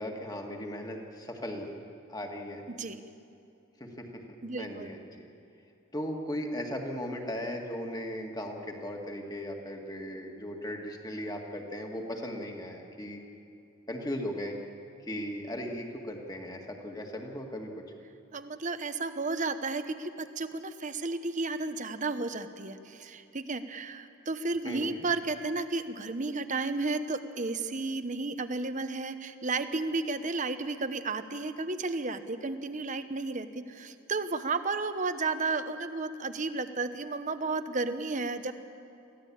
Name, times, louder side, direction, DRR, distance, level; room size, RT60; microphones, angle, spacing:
voice 1, 0.0-1.7 2.1-2.6 3.8-4.1 4.6-5.3 5.9-13.2 13.9-14.5 15.0-17.8 24.6-25.1, equal, 20° left, 2 dB, 2.0 m, -37 dB
voice 2, 2.7-3.0 4.4-4.9 18.3-38.5, right 3 dB, 35° right, 10 dB, 0.9 m, -33 dB
23.0 x 16.0 x 8.6 m, 2.7 s
head